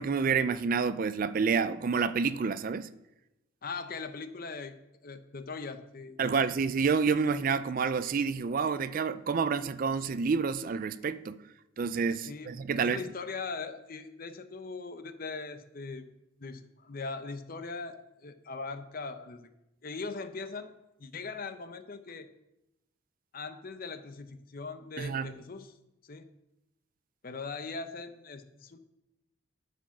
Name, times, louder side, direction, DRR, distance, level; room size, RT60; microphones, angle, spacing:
voice 1, 0.0-2.9 6.2-11.4 11.8-13.0 25.0-25.4, right 5 dB, 40° right, 0.4 m, -29 dB
voice 2, 3.6-4.8 5.0-6.4 12.2-16.1 16.4-19.5 19.8-20.7 21.0-22.3 23.3-25.7 26.0-26.3 27.2-28.8, left 4 dB, 45° left, 0.7 m, -40 dB
12.5 x 5.0 x 5.8 m
head